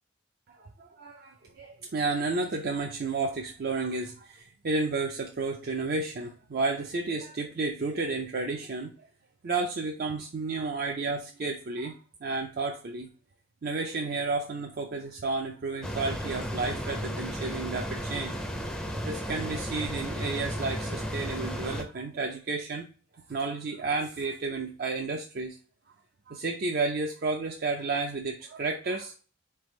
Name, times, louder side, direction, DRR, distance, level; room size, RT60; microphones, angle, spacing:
voice 1, 0.8-9.1 9.4-12.0 12.2-13.1 13.6-18.4 19.0-22.9 23.3-25.6 26.3-29.2, right 3 dB, 50° right, 2 dB, 0.5 m, -32 dB
sound 1, 15.8-21.8, equal, 5° left, 0.5 m, -34 dB
4.3 x 3.3 x 3.1 m, 0.37 s
head